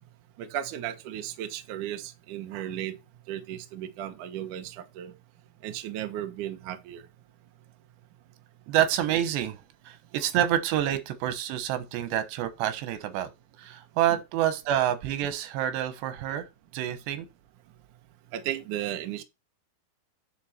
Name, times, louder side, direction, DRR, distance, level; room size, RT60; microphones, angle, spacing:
voice 1, 0.4-3.0 3.3-5.1 5.6-7.1 18.3-19.2, right 11 dB, 70° right, 2.1 m, -35 dB
voice 2, 8.7-9.6 9.9-13.3 13.6-16.4 16.7-17.3, right 11 dB, 85° right, 3.4 m, -27 dB
10.0 x 5.6 x 4.3 m
omnidirectional pair, 4.8 m